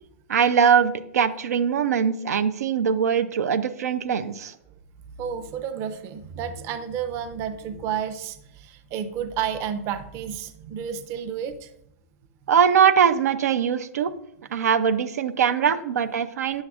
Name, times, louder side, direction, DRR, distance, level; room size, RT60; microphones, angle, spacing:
voice 1, 0.3-4.5 12.5-14.1 14.5-16.6, right 7 dB, 85° right, 10 dB, 0.5 m, -21 dB
voice 2, 5.2-11.7, right 8 dB, 35° right, 8 dB, 0.6 m, -31 dB
9.4 x 6.4 x 2.4 m, 0.77 s
hypercardioid pair, 145°, 8 cm